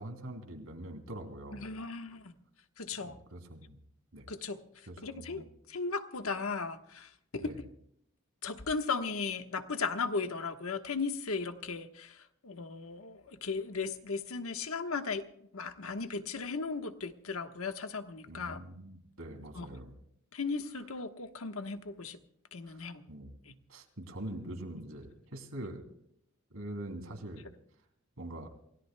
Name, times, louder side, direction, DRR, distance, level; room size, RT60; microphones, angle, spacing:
voice 1, 0.0-1.7 3.0-3.8 4.1-4.2 4.9-5.5 7.4-7.6 18.3-19.9 22.6-23.4 23.7-25.8 26.5-27.4 28.2-28.5, right 1 dB, 85° right, 4 dB, 3.0 m, -44 dB
voice 2, 1.5-2.3 2.8-3.2 4.3-4.6 5.0-7.5 8.4-15.2 15.5-18.6 19.5-19.7 20.3-22.2 22.5-23.0 23.5-23.6, left 4 dB, 85° left, 7 dB, 1.3 m, -36 dB
28.5 x 17.0 x 2.2 m, 0.72 s
head